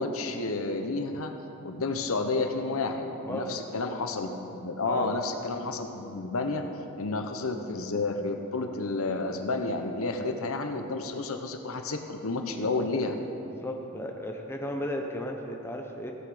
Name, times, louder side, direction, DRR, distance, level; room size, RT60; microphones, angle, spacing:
voice 1, 0.0-1.3 1.6-6.7 7.0-13.1, left 3 dB, 70° left, 5 dB, 0.9 m, -31 dB
voice 2, 4.8-5.1 12.6-12.7 13.4-16.1, left 1 dB, 10° left, 1 dB, 0.8 m, -35 dB
15.5 x 8.3 x 5.0 m, 2.9 s
head